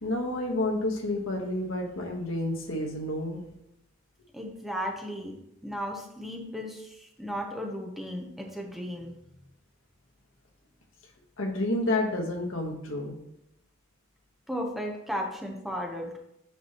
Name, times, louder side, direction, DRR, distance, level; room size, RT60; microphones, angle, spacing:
voice 1, 0.0-3.4 11.4-13.1, left 1 dB, 80° left, 2 dB, 1.2 m, -30 dB
voice 2, 4.3-5.3 5.6-9.1 14.5-16.2, equal, ahead, 0 dB, 0.8 m, -35 dB
8.0 x 6.0 x 2.9 m, 0.82 s
head